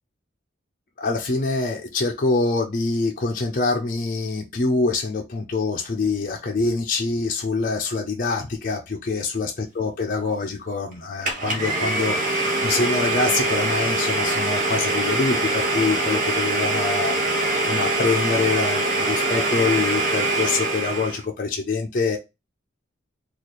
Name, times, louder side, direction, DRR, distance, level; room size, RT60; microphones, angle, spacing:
voice 1, 1.0-22.2, left 3 dB, 45° left, 0.5 m, -25 dB
Domestic sounds home sounds, 11.2-21.2, right 2 dB, 45° right, 0.9 m, -23 dB
3.1 x 2.4 x 4.1 m
head